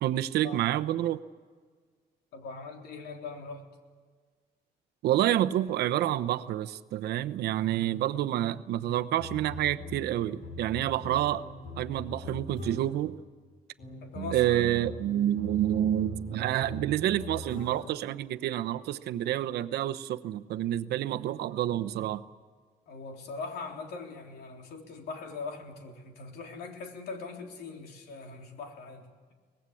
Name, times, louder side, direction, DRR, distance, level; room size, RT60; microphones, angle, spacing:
voice 1, 0.0-1.2 5.0-11.4 11.8-13.2 14.1-22.2, right 12 dB, 90° right, 10 dB, 1.0 m, -28 dB
voice 2, 2.3-3.7 14.0-14.7 22.9-29.1, left 4 dB, 85° left, 3 dB, 3.7 m, -41 dB
sound 1, 8.9-13.1 13.8-18.0, left 2 dB, 50° left, 6.2 m, -42 dB
24.0 x 19.5 x 8.5 m, 1.5 s
cardioid pair, 180°, 16 cm